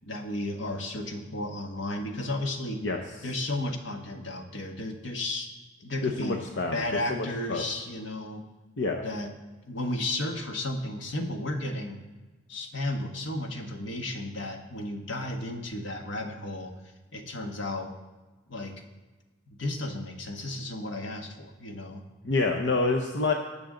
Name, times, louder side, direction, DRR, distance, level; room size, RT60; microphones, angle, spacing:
voice 1, 0.0-2.8 3.2-5.5 5.8-6.4 6.7-8.4 9.0-9.3 9.7-12.0 12.5-16.7 17.1-17.9 18.5-18.7 19.6-22.0, left 1 dB, 85° left, 3 dB, 1.4 m, -33 dB
voice 2, 6.0-7.6 8.8-9.0 22.2-23.3, left 3 dB, 70° left, 2 dB, 0.8 m, -27 dB
19.5 x 7.0 x 3.9 m, 1.2 s
head